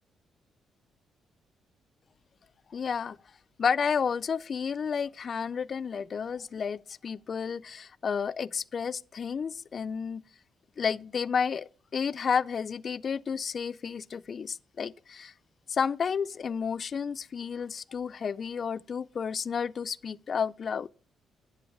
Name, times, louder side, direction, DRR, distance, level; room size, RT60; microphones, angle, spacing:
voice 1, 2.7-3.2 3.6-10.2 10.8-15.3 15.7-20.9, left 6 dB, 45° left, 0.3 m, -31 dB
9.5 x 8.4 x 3.6 m
cardioid pair, 90°, 0 cm